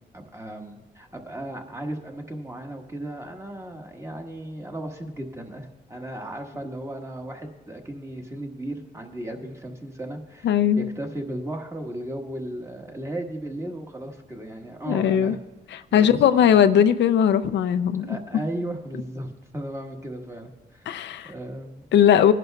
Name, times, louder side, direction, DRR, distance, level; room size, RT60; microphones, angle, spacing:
voice 1, 0.1-15.4 15.9-16.6 18.1-20.9 21.2-21.8, right 1 dB, 15° right, 2 dB, 1.5 m, -35 dB
voice 2, 10.4-10.9 14.9-15.4 15.7-18.2 20.9-21.3 21.9-22.3, left 9 dB, 80° left, 10 dB, 0.5 m, -19 dB
21.5 x 11.0 x 2.3 m, 1.1 s
cardioid pair, 85°, 18 cm